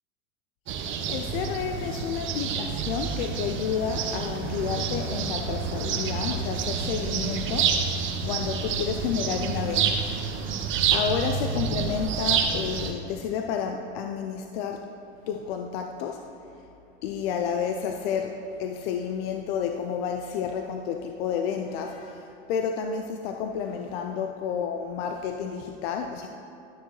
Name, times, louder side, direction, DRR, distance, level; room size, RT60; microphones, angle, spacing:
sound 1, 0.7-12.9, right 6 dB, 40° right, 0.8 m, -28 dB
voice 1, 0.8-10.1 10.3-14.9 15.3-16.3 17.0-26.3, left 7 dB, 65° left, 4 dB, 0.6 m, -31 dB
11.5 x 6.4 x 3.1 m, 2.7 s
hypercardioid pair, 100°, 32 cm